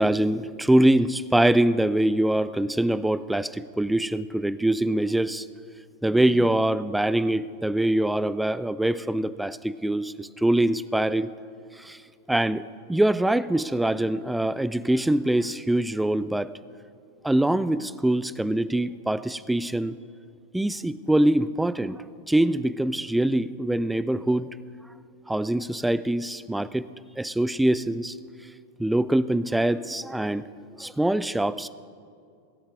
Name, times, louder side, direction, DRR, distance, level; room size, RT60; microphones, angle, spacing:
voice 1, 0.0-5.5 6.0-11.3 11.8-12.0 12.3-16.6 17.2-19.9 20.5-24.5 25.3-26.9 27.2-28.2 28.8-30.5 30.8-31.7, right 1 dB, 5° right, 16 dB, 0.3 m, -24 dB
20.5 x 8.7 x 3.6 m, 2.4 s
figure-of-eight pair, 90°, 0 cm